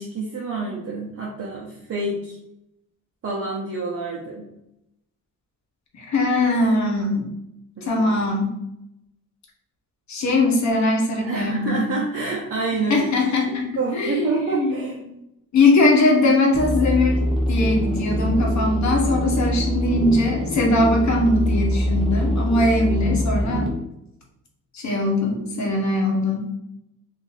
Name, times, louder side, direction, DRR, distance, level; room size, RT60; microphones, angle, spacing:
voice 1, 0.0-2.4 3.2-4.5 7.8-8.1 11.2-13.1 13.8-15.0 25.3-25.7, right 3 dB, 45° right, -4 dB, 0.7 m, -28 dB
voice 2, 5.9-7.3 7.8-8.5 10.1-11.8 12.9-13.7 13.9-14.8 15.0-15.1 15.5-17.2 17.5-23.7 24.7-26.5, left 2 dB, 60° left, 1 dB, 0.9 m, -20 dB
sound 1, 16.5-23.7, equal, ahead, 0.7 m, -24 dB
2.6 x 2.5 x 3.9 m, 0.83 s
cardioid pair, 115°, 32 cm